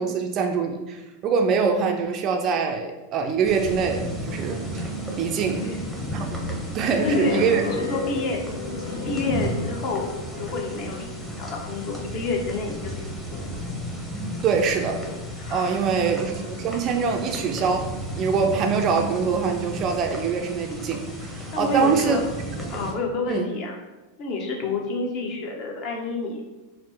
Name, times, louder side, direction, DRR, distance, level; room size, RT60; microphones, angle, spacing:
voice 1, 0.0-4.9 5.2-5.7 6.1-6.4 6.7-7.6 14.4-15.0 15.5-17.9 18.2-22.2 23.3-23.5, right 5 dB, 35° right, 4 dB, 0.4 m, -24 dB
sound 1, 3.4-22.9, equal, 5° left, 0.8 m, -33 dB
voice 2, 5.4-5.8 6.9-8.4 9.0-13.4 15.4-15.8 21.5-22.2 22.7-23.8 24.2-26.4, left 2 dB, 40° left, 1 dB, 0.8 m, -29 dB
sound 2, 6.9-10.2, left 4 dB, 75° left, 0.7 m, -31 dB
4.4 x 2.0 x 4.2 m, 1.1 s
figure-of-eight pair, 90°, 0 cm